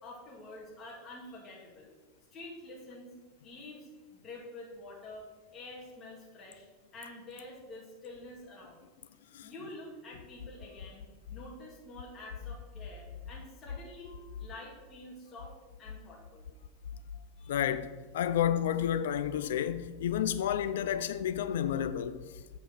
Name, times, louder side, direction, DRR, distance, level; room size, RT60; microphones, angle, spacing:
voice 1, 0.0-1.9 2.3-3.1 3.4-5.2 5.5-6.7 6.9-8.8 9.4-15.5 15.8-16.5 17.4-17.6, left 2 dB, 30° left, 2.0 m, -48 dB
voice 2, 17.5-22.2, left 10 dB, 85° left, 0.4 m, -30 dB
7.3 x 4.4 x 5.7 m
supercardioid pair, 130°, 0 cm